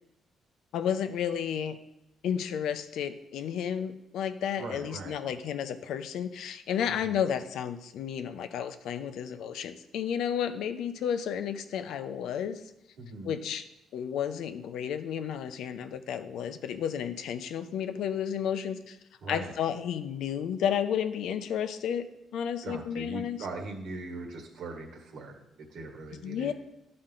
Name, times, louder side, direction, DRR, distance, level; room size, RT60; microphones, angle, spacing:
voice 1, 0.7-1.8 2.2-12.6 13.2-13.6 13.9-19.0 19.3-22.1 22.3-23.4 26.2-26.5, left 8 dB, 80° left, 11 dB, 0.5 m, -32 dB
voice 2, 4.6-5.2 7.0-7.2 13.0-13.4 19.2-19.5 22.6-26.5, right 3 dB, 75° right, 3 dB, 1.5 m, -40 dB
11.5 x 4.3 x 3.8 m, 0.88 s
cardioid pair, 90°, 0 cm